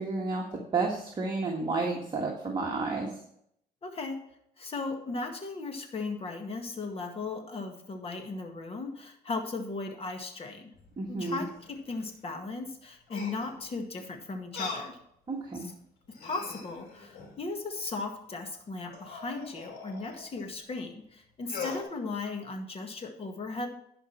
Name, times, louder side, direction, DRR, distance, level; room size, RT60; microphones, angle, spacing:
voice 1, 0.0-3.1 11.0-11.4 15.3-15.7, right 3 dB, 25° right, -2 dB, 1.7 m, -31 dB
voice 2, 3.8-4.2 4.6-10.7 11.1-15.0 15.5-15.6 16.2-23.7, left 3 dB, 35° left, 4 dB, 1.8 m, -37 dB
sound 1, 10.7-12.1 13.1-13.6 14.5-14.9 15.5-15.6 16.0-17.4 18.9-20.4 21.4-21.8, left 5 dB, 75° left, 3.9 m, -41 dB
11.0 x 5.2 x 6.0 m, 0.71 s
cardioid pair, 110°, 17 cm